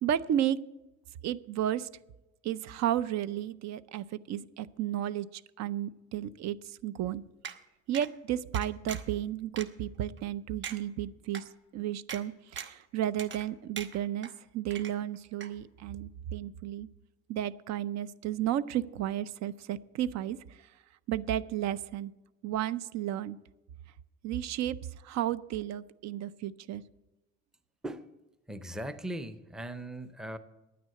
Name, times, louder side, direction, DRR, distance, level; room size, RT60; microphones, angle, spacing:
voice 1, 0.0-0.6 1.2-1.9 2.4-6.6 6.8-7.2 7.9-11.4 11.7-14.3 14.5-16.9 17.3-20.4 21.1-22.1 22.4-23.4 24.2-24.8 25.0-26.8, right 11 dB, 65° right, 16 dB, 0.5 m, -33 dB
sound 1, 7.4-7.6 7.9-8.1 8.5-9.1 9.6-9.7 10.2-10.3 10.6-10.8 11.3-11.4 12.1-12.2 12.6-12.8 13.2-13.5 13.8-14.3 14.7-15.2 15.4-15.5, right 7 dB, 40° right, 1.0 m, -40 dB
voice 2, 28.5-30.4, right 1 dB, ahead, 11 dB, 0.5 m, -39 dB
10.0 x 9.4 x 7.5 m, 1.0 s
cardioid pair, 150°, 29 cm